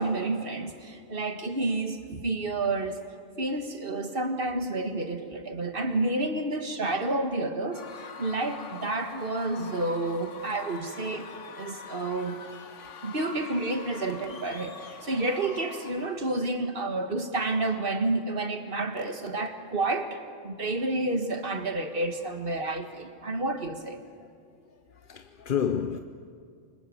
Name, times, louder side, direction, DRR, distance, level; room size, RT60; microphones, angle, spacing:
voice 1, 0.0-3.0 3.4-12.4 13.0-24.0, right 2 dB, 45° right, 1.8 m, -30 dB
Screaming / Cheering / Crowd, 7.7-16.3, left 5 dB, 65° left, 1.6 m, -44 dB
voice 2, 24.6-26.0, left 8 dB, 45° left, 0.9 m, -32 dB
28.5 x 25.0 x 7.8 m
omnidirectional pair, 1.4 m